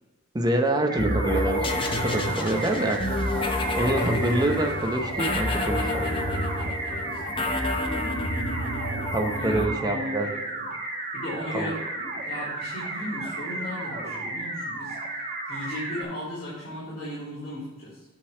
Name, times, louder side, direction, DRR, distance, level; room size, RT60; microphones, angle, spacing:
voice 1, 0.3-3.0 3.7-6.1 9.1-10.3 11.5-11.7, right 1 dB, 20° right, 3 dB, 0.8 m, -26 dB
sound 1, 0.9-16.0, right 2 dB, 40° right, 1.5 m, -34 dB
sound 2, 1.0-9.7, left 1 dB, 25° left, 0.7 m, -29 dB
voice 2, 6.9-7.6 9.3-10.4 11.1-15.0 15.5-18.0, left 1 dB, 40° left, -10 dB, 2.7 m, -36 dB
8.8 x 4.0 x 5.7 m, 1.2 s
head